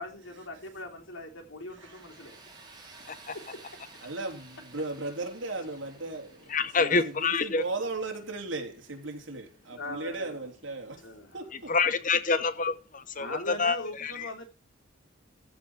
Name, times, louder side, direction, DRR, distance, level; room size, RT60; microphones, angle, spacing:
voice 1, 0.0-2.4 2.9-3.0 3.3-3.8 6.9-7.0 9.8-10.4 11.0-11.3 13.2-14.5, left 2 dB, 75° left, 3 dB, 3.2 m, -40 dB
Tools, 1.8-10.5, right 3 dB, 20° right, 3.4 m, -54 dB
voice 2, 4.0-11.1 11.3-11.7, right 3 dB, 70° right, 3 dB, 3.3 m, -37 dB
voice 3, 6.5-7.6 11.7-14.3, left 4 dB, 40° left, 12 dB, 0.8 m, -27 dB
14.5 x 5.2 x 5.5 m, 0.34 s
head